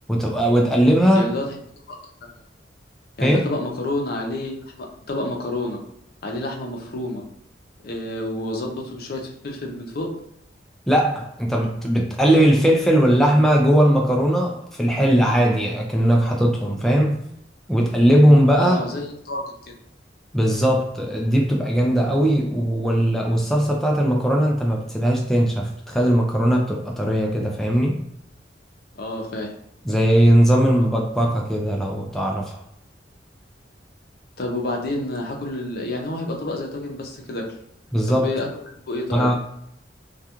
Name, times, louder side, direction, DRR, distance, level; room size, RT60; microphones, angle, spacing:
voice 1, 0.1-1.3 3.2-3.4 10.9-17.2 17.7-18.8 20.3-28.0 29.9-32.6 37.9-38.3 39.1-39.4, equal, ahead, -1 dB, 0.3 m, -19 dB
voice 2, 1.1-1.6 1.9-2.0 2.2-2.3 3.2-5.8 6.2-7.2 7.8-10.1 18.5-19.7 29.0-29.5 34.4-37.5 38.1-38.5 38.9-39.3, left 1 dB, 60° left, 1 dB, 0.5 m, -29 dB
2.3 x 2.3 x 2.8 m, 0.76 s
head